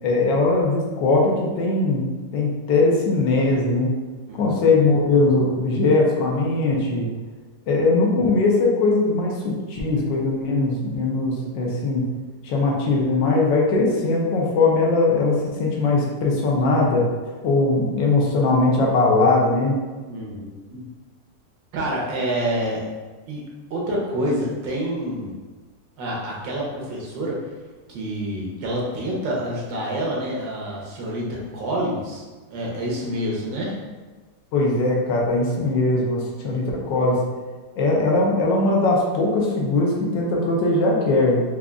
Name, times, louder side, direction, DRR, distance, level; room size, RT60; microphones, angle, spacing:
voice 1, 0.0-4.0 4.3-7.1 7.7-12.0 12.4-17.1 17.4-19.7 34.5-37.2 37.8-41.4, left 3 dB, 85° left, -2 dB, 1.4 m, -20 dB
voice 2, 4.3-4.7 20.1-20.9 21.7-22.8 23.3-23.4 23.7-25.3 26.0-27.4 27.9-32.2 32.5-33.8, right 1 dB, 80° right, -3 dB, 1.6 m, -27 dB
5.0 x 2.4 x 2.3 m, 1.3 s
omnidirectional pair, 2.0 m